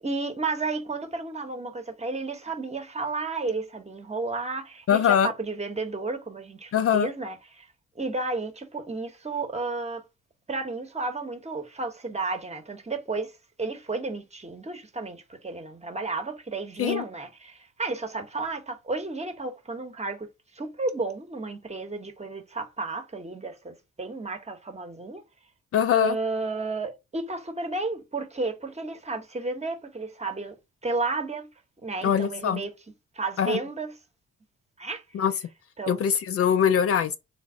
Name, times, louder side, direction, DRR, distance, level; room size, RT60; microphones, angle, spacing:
voice 1, 0.0-7.7 8.0-10.0 10.5-13.3 13.6-20.3 20.5-25.2 25.9-30.6 30.8-31.5 31.8-32.7 33.1-33.9 34.8-35.0 35.8-36.0, right 3 dB, 20° right, 0.9 m, -32 dB
voice 2, 4.9-5.3 6.7-7.1 16.8-17.0 25.7-26.1 32.0-32.6 33.4-33.6 35.1-35.3 35.9-37.2, left 8 dB, 50° left, 0.4 m, -22 dB
3.2 x 2.1 x 3.6 m
supercardioid pair, 50°, 29 cm